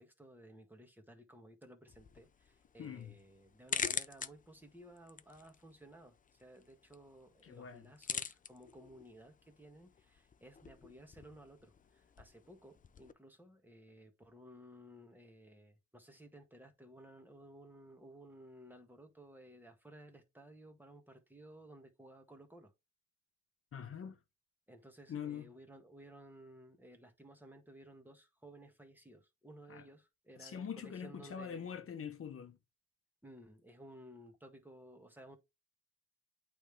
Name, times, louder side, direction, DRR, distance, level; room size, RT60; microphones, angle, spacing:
voice 1, 0.0-22.7 24.7-31.8 33.2-35.4, right 1 dB, 5° right, 1.6 m, -57 dB
sound 1, 1.9-13.1, left 6 dB, 25° left, 0.5 m, -46 dB
voice 2, 2.8-3.1 7.4-7.9 23.7-24.2 25.1-25.5 29.7-29.8 30.4-32.6, left 7 dB, 45° left, 1.1 m, -44 dB
8.8 x 3.6 x 3.4 m
cardioid pair, 90°, 30 cm